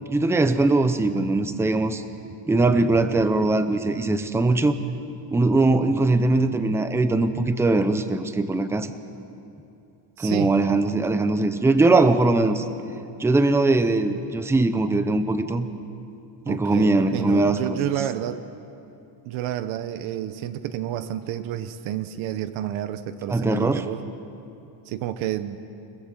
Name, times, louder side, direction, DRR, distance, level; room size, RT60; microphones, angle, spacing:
voice 1, 0.1-2.0 2.5-4.8 5.3-8.9 10.2-12.7 13.2-15.7 16.5-17.8 23.3-23.8, right 2 dB, 5° right, 10 dB, 0.6 m, -21 dB
voice 2, 10.2-10.5 16.5-18.4 19.3-24.0 24.9-25.6, right 11 dB, 75° right, 11 dB, 1.1 m, -30 dB
29.5 x 19.0 x 7.5 m, 2.8 s
cardioid pair, 180°, 48 cm